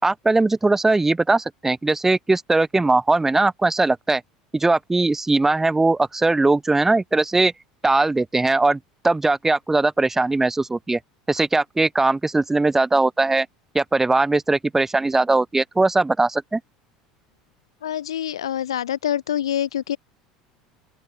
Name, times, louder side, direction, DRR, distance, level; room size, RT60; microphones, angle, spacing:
voice 1, 0.0-4.2 4.5-7.5 7.8-11.0 11.3-13.5 13.7-16.6, right 2 dB, 10° right, 7.4 m, -20 dB
voice 2, 17.8-20.0, left 10 dB, 75° left, 3.4 m, -25 dB
open air
figure-of-eight pair, 70°, 3 cm